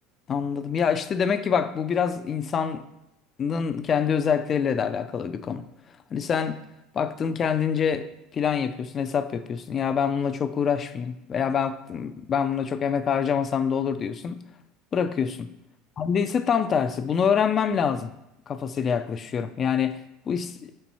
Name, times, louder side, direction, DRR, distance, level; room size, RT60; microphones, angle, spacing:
voice 1, 0.3-2.8 3.4-5.6 6.1-6.6 6.9-8.1 8.3-14.4 14.9-15.5 16.0-18.1 18.5-20.0 20.3-20.7, left 7 dB, 30° left, 12 dB, 0.4 m, -25 dB
5.2 x 4.4 x 5.6 m, 0.87 s
supercardioid pair, 125°, 0 cm